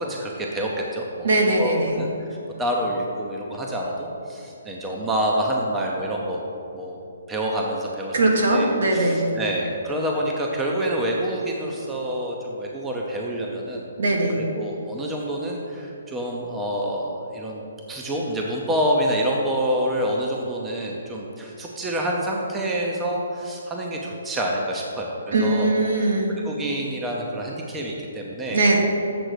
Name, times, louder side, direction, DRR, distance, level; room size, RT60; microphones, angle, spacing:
voice 1, 0.0-2.3 2.6-6.4 6.7-7.0 7.3-8.2 8.5-13.9 14.3-17.6 17.9-25.7 26.4-28.6, equal, 10° right, -2 dB, 0.7 m, -27 dB
voice 2, 1.2-2.0 8.1-9.3 14.0-14.4 25.3-26.3 28.5-28.8, right 2 dB, 65° right, 0 dB, 1.5 m, -20 dB
7.7 x 3.9 x 6.7 m, 2.7 s
hypercardioid pair, 155°, 0 cm